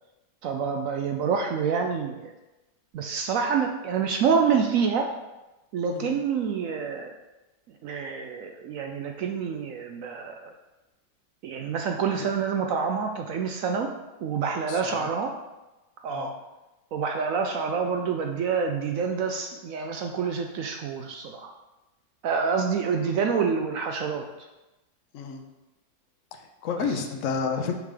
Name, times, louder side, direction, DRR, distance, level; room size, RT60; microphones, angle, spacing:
voice 1, 0.4-2.3 2.9-5.1 5.7-7.1 7.8-10.5 11.4-13.9 14.2-15.3 16.0-16.3 16.9-21.5 22.2-24.5 26.8-26.9, right 6 dB, 75° right, 3 dB, 0.7 m, -27 dB
voice 2, 14.7-15.1 16.1-16.3 25.1-25.4 26.3-27.7, left 5 dB, 65° left, 5 dB, 0.8 m, -31 dB
6.4 x 3.4 x 5.1 m, 1.0 s
omnidirectional pair, 1.9 m